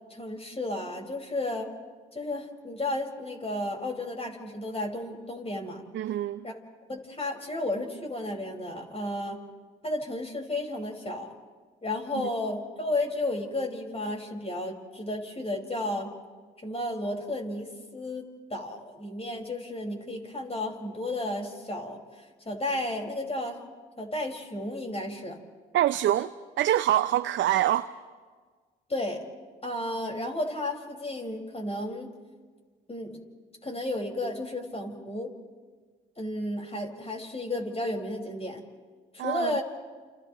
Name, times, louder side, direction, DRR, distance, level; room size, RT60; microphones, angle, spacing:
voice 1, 0.1-1.7 2.1-5.8 6.4-6.5 6.9-9.4 9.8-11.3 11.8-16.1 16.6-18.3 18.5-23.6 24.0-25.4 28.9-29.2 29.6-32.1 32.9-33.2 33.6-35.3 36.2-38.6 39.1-39.6, left 1 dB, 30° left, 5.2 m, -33 dB
voice 2, 5.9-6.5 25.7-26.3 26.6-27.9 39.2-39.6, right 12 dB, 70° right, 0.5 m, -25 dB
29.5 x 29.5 x 3.1 m
supercardioid pair, 50°, 20 cm